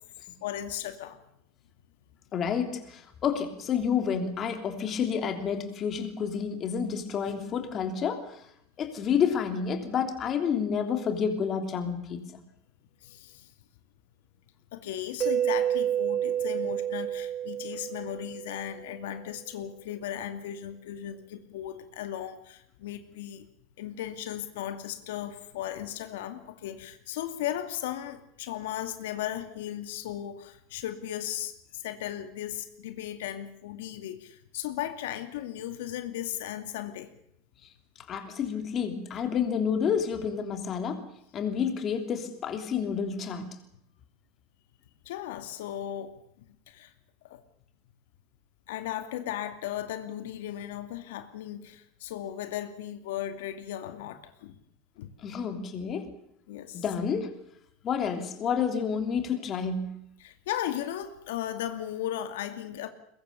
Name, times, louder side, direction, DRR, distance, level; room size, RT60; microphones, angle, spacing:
voice 1, 0.2-1.2 13.0-13.5 14.7-23.5 23.8-37.1 45.0-46.2 46.5-46.9 47.2-47.4 48.7-54.6 55.0-55.1 56.5-56.8 60.2-62.9, left 11 dB, 85° left, 9 dB, 2.3 m, -36 dB
voice 2, 2.3-8.4 8.8-12.2 38.1-41.1 41.3-43.6 55.2-56.1 56.7-57.4 57.8-60.0, left 7 dB, 30° left, 6 dB, 3.2 m, -29 dB
Mallet percussion, 15.2-19.0, right 10 dB, 30° right, 0.9 m, -29 dB
22.5 x 22.0 x 6.9 m, 0.74 s
supercardioid pair, 155°, 0 cm